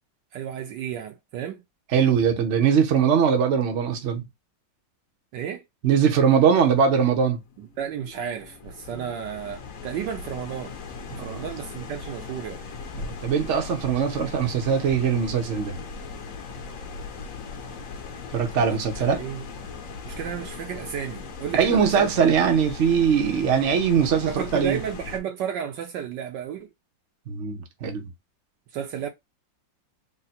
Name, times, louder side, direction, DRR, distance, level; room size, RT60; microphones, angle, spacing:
voice 1, 0.3-1.6 5.3-5.6 7.6-10.7 11.2-12.6 18.6-19.4 20.0-22.1 24.2-26.7 28.7-29.1, right 9 dB, 75° right, 1.3 m, -33 dB
voice 2, 1.9-4.2 5.8-7.4 11.1-11.4 13.0-15.8 18.3-19.2 21.5-24.8 27.3-28.1, right 7 dB, 55° right, 0.8 m, -21 dB
sound 1, 6.6-25.2, left 4 dB, 60° left, 0.9 m, -39 dB
3.8 x 2.1 x 4.1 m
omnidirectional pair, 2.1 m